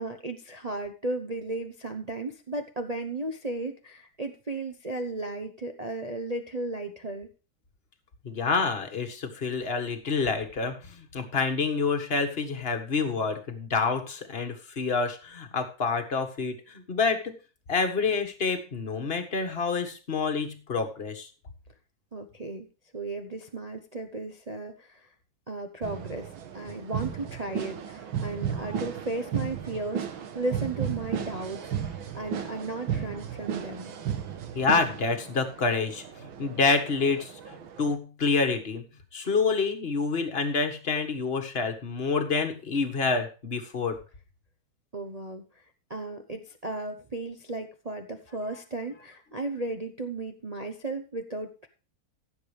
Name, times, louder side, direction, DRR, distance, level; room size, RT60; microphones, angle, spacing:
voice 1, 0.0-7.3 22.1-22.7 22.9-25.1 25.5-33.9 44.9-45.6 45.9-51.7, right 2 dB, 45° right, 6 dB, 0.5 m, -35 dB
voice 2, 8.2-17.3 17.7-21.3 34.5-38.8 39.1-44.0, left 4 dB, 30° left, 6 dB, 1.6 m, -28 dB
sound 1, 25.8-38.0, right 8 dB, 75° right, 2.0 m, -35 dB
15.5 x 7.6 x 3.4 m, 0.34 s
omnidirectional pair, 2.2 m